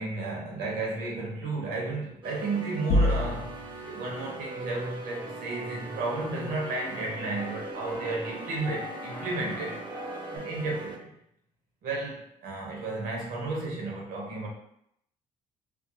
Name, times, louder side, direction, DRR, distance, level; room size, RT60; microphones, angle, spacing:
voice 1, 0.0-10.0 10.3-11.1 11.8-14.5, right 2 dB, 85° right, -2 dB, 0.8 m, -33 dB
sound 1, 2.2-11.0, right 3 dB, 35° right, 0.5 m, -41 dB
sound 2, 2.9-3.9, left 1 dB, 70° left, 0.5 m, -25 dB
Keyboard (musical), 4.5-10.4, left 1 dB, 25° left, 0.7 m, -44 dB
2.4 x 2.3 x 2.7 m, 0.73 s
cardioid pair, 85°, 14 cm